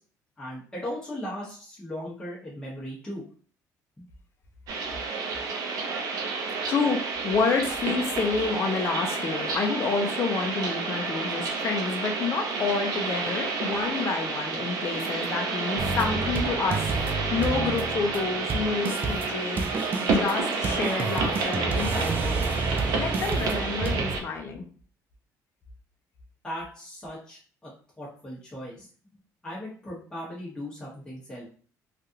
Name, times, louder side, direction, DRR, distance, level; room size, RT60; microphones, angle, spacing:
voice 1, 0.4-3.2 4.0-4.1 26.4-27.7 28.0-28.9 29.4-31.5, equal, 10° left, -7 dB, 1.0 m, -37 dB
sound 1, 4.7-24.2, right 4 dB, 70° right, 0.6 m, -30 dB
voice 2, 6.7-19.6 20.0-22.4 22.9-24.7, left 4 dB, 40° left, 3 dB, 0.6 m, -29 dB
sound 2, 15.8-24.2, right 3 dB, 30° right, 0.4 m, -30 dB
3.2 x 2.4 x 2.7 m, 0.44 s
cardioid pair, 135°, 7 cm